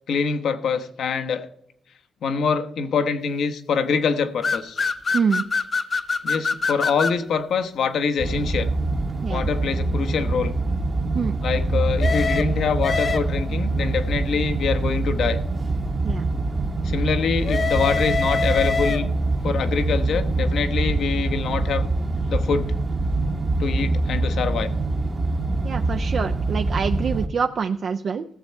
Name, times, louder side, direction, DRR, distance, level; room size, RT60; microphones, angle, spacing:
voice 1, 0.0-1.5 2.2-4.8 6.2-8.7 9.3-10.5 11.4-15.4 16.8-19.1 19.4-21.9 22.3-22.7 23.6-24.7, left 5 dB, 75° left, 8 dB, 1.0 m, -25 dB
sound 1, 4.4-7.2 12.0-13.6 17.4-19.3, left 4 dB, 40° left, 0.6 m, -25 dB
voice 2, 5.1-5.4 9.2-9.5 11.1-11.4 16.0-16.3 25.6-28.3, right 6 dB, 55° right, 6 dB, 0.5 m, -25 dB
sound 2, 8.2-27.3, right 2 dB, 35° right, 1.0 m, -24 dB
15.5 x 7.0 x 4.4 m, 0.73 s
cardioid pair, 85°, 0 cm